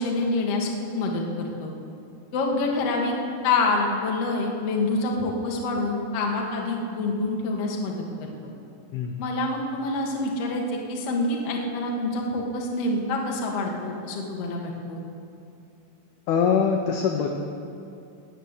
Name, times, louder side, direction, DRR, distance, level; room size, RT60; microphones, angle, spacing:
voice 1, 0.0-1.7 2.3-3.1 3.4-8.3 9.2-15.0, left 2 dB, 65° left, 0 dB, 1.5 m, -26 dB
voice 2, 16.3-17.3, left 6 dB, 85° left, 3 dB, 2.2 m, -23 dB
19.5 x 7.7 x 6.7 m, 2.6 s
omnidirectional pair, 5.5 m